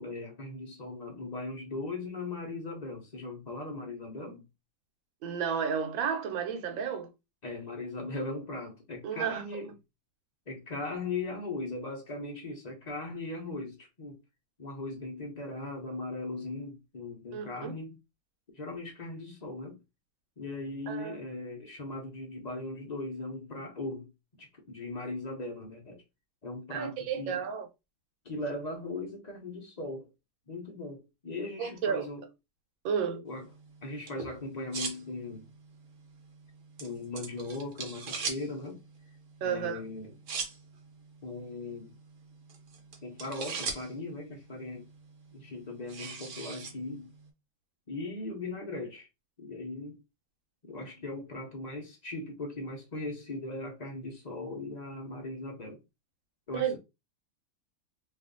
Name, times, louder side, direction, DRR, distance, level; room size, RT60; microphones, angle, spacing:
voice 1, 0.0-4.5 7.4-9.7 10.5-14.2 14.6-18.0 18.5-19.8 20.4-24.1 24.4-26.0 26.4-27.4 28.2-30.1 30.5-32.2 33.2-33.5 33.8-35.5 36.8-38.8 39.4-40.1 41.2-41.9 43.0-44.8 45.3-47.1 47.9-49.1 49.4-50.0 50.6-55.8 56.5-56.8, left 2 dB, 80° left, 0.3 m, -39 dB
voice 2, 5.2-7.1 9.0-9.6 17.3-17.7 20.9-21.1 26.7-27.7 31.6-32.1 32.8-33.2 39.4-39.8 56.5-56.8, right 7 dB, 80° right, 1.5 m, -32 dB
sound 1, 33.3-47.3, right 4 dB, 55° right, 1.2 m, -43 dB
3.1 x 2.5 x 3.8 m
omnidirectional pair, 2.1 m